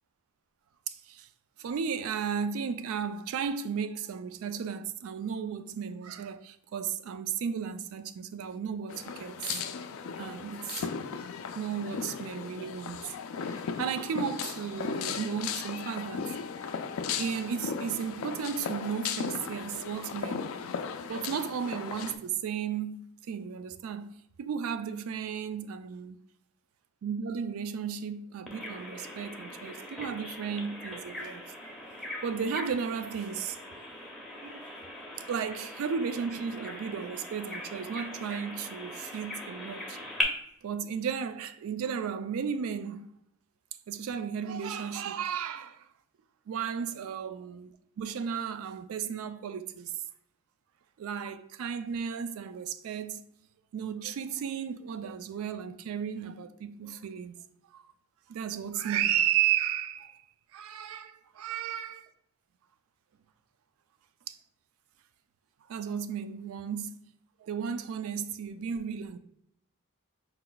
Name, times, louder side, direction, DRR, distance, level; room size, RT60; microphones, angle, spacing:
voice 1, 0.9-1.3 1.6-9.5 10.2-10.9 11.5-13.1 13.8-16.3 17.2-20.6 21.1-24.1 24.4-26.2 27.0-31.4 32.2-33.6 34.4-34.7 35.3-40.0 40.6-43.1 43.9-45.9 46.5-49.9 51.0-53.2 53.7-57.4 57.7-57.8 58.3-60.2 60.5-62.1 64.3-64.4 65.7-67.0 67.4-69.2, right 7 dB, 70° right, 0.3 m, -34 dB
sound 1, 8.9-22.2, left 6 dB, 65° left, 0.3 m, -36 dB
Bird vocalization bird call bird song, 28.5-40.2, left 1 dB, ahead, 0.5 m, -40 dB
4.2 x 2.2 x 3.8 m
head